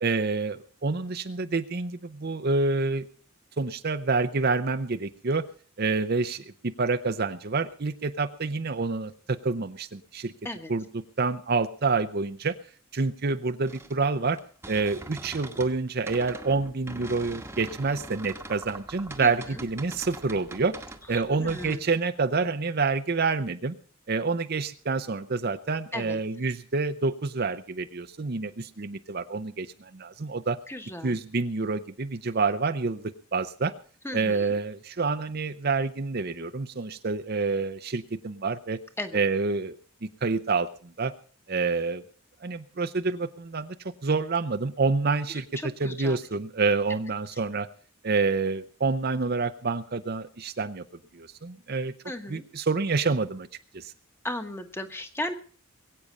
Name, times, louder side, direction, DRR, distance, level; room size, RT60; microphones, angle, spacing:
voice 1, 0.0-3.1 3.6-5.4 5.8-10.3 10.7-12.6 12.9-14.4 14.7-20.7 21.1-23.8 24.1-30.6 31.0-33.7 34.1-38.8 39.1-39.8 40.0-41.1 41.5-42.0 42.4-43.8 44.0-47.7 48.0-50.8 51.1-51.9 52.3-53.5 53.7-53.9, right 4 dB, 45° right, 10 dB, 0.7 m, -28 dB
sound 1, 13.7-15.8 16.1-21.8, right 2 dB, 10° right, 1.1 m, -43 dB
voice 2, 19.2-19.6 21.3-21.8 25.9-26.2 30.7-31.2 34.0-34.6 39.0-39.2 45.6-46.2 52.0-52.4 54.2-55.3, left 1 dB, 10° left, 8 dB, 1.2 m, -35 dB
21.5 x 8.7 x 5.3 m, 0.43 s
head